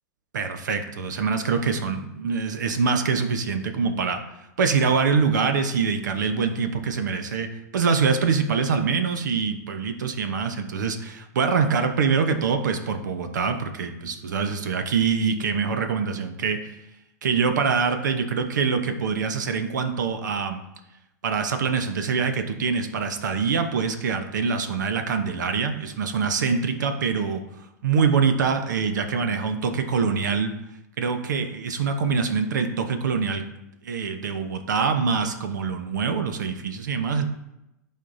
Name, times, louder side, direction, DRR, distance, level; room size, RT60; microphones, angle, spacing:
voice 1, 0.3-4.2 4.6-7.5 7.7-16.8 17.2-20.6 21.2-27.4 27.8-30.5 31.0-33.4 33.8-37.3, right 5 dB, 85° right, 7 dB, 0.8 m, -24 dB
11.5 x 4.2 x 2.6 m, 0.90 s
hypercardioid pair, 105°, 10 cm